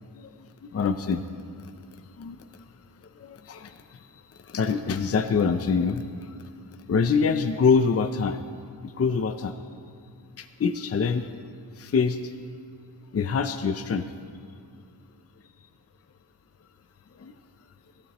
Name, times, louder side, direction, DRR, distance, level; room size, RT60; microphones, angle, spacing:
voice 1, 0.7-1.2 2.2-2.4 3.2-3.7 4.5-6.1 6.9-8.4 8.8-9.5 10.4-11.3 11.8-12.3 13.1-14.0 17.2-17.3, left 5 dB, 40° left, 9 dB, 0.6 m, -25 dB
23.5 x 12.5 x 3.0 m, 2.3 s
wide cardioid pair, 110°, 39 cm